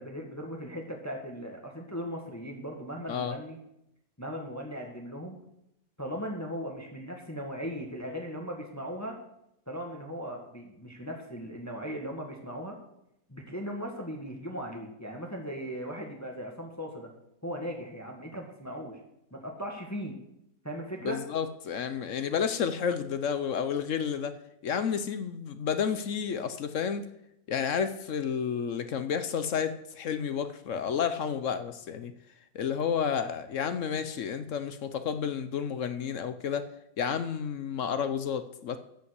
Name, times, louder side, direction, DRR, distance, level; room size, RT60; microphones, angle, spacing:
voice 1, 0.0-3.6 4.2-5.4 6.0-9.2 9.7-12.8 13.3-17.1 17.4-19.0 19.3-20.2 20.6-21.2, equal, 10° left, 1 dB, 1.7 m, -38 dB
voice 2, 21.0-24.3 24.6-27.1 27.5-32.1 32.5-36.6 37.0-38.8, left 7 dB, 60° left, 11 dB, 1.0 m, -31 dB
12.5 x 5.7 x 8.1 m, 0.81 s
omnidirectional pair, 1.6 m